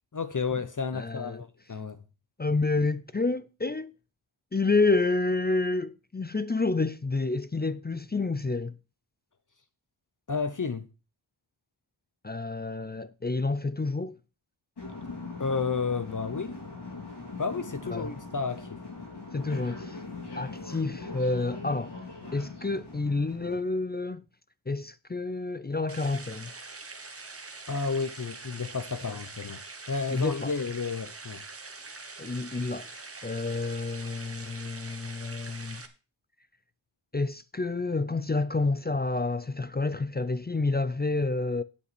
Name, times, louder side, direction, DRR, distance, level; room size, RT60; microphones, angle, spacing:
voice 1, 0.1-2.0 10.3-10.9 15.4-16.6 17.4-18.8 27.7-29.6 29.9-31.4, left 5 dB, 40° left, 0.8 m, -31 dB
voice 2, 0.9-1.4 2.4-3.9 4.5-8.7 12.2-14.2 17.9-18.1 19.3-20.0 20.4-22.0 22.3-24.2 24.7-26.5 29.1-29.2 30.1-30.5 32.2-35.8 37.1-41.6, left 3 dB, 20° left, 0.4 m, -29 dB
sound 1, 14.8-23.6, left 3 dB, 55° left, 3.9 m, -41 dB
sound 2, 25.9-35.9, right 3 dB, 30° right, 1.3 m, -44 dB
8.5 x 8.3 x 5.9 m
wide cardioid pair, 115°, 47 cm